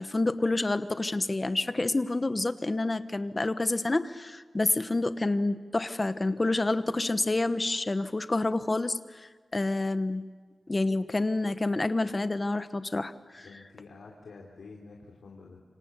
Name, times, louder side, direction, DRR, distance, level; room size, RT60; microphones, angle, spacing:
voice 1, 0.0-10.2 10.7-13.5, left 2 dB, 25° left, 11 dB, 1.1 m, -28 dB
voice 2, 13.4-15.6, left 4 dB, 80° left, -2 dB, 3.6 m, -49 dB
27.5 x 26.0 x 8.2 m, 1.5 s
wide cardioid pair, 155°, 0 cm